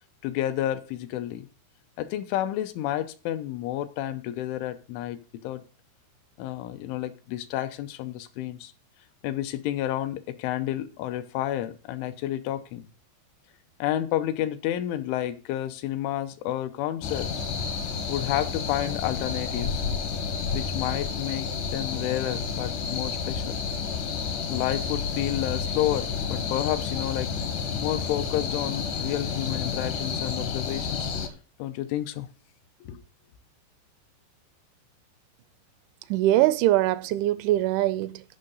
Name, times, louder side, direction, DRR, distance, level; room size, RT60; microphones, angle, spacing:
voice 1, 0.2-1.5 2.0-5.2 5.4-5.6 6.4-8.7 9.2-12.9 13.8-17.3 18.1-19.9 20.5-23.6 24.5-27.3 27.8-31.1 31.6-32.3 32.8-33.0, left 13 dB, 90° left, 3.2 m, -30 dB
sound 1, 17.0-31.3, left 6 dB, 70° left, 2.0 m, -30 dB
voice 2, 36.1-38.2, right 15 dB, 90° right, 3.0 m, -22 dB
13.0 x 5.5 x 3.9 m
omnidirectional pair, 5.3 m